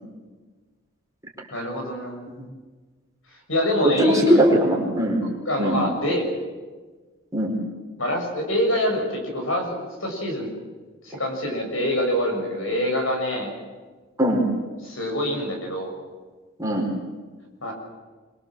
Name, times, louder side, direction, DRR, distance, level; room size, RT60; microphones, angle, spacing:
voice 1, 1.5-2.2 3.5-4.5 5.4-6.3 8.0-10.5 11.0-13.5 14.8-15.9 17.6-17.7, left 1 dB, 70° left, 3 dB, 6.6 m, -25 dB
voice 2, 3.8-5.2 5.6-5.8 7.3-7.5 14.2-14.5 16.6-16.9, equal, 15° right, -1 dB, 4.6 m, -20 dB
26.0 x 23.0 x 7.5 m, 1.4 s
head